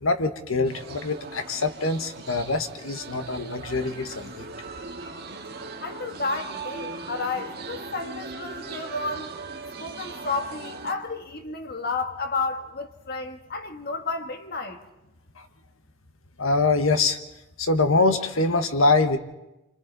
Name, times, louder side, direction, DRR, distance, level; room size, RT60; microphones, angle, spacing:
voice 1, 0.0-4.5 16.4-17.2 17.6-19.2, left 3 dB, 85° left, 1.3 m, -24 dB
sound 1, 0.6-10.9, right 4 dB, 50° right, 2.0 m, -39 dB
voice 2, 5.8-9.3 9.8-14.8, left 3 dB, 50° left, 1.6 m, -31 dB
28.0 x 25.5 x 4.0 m
head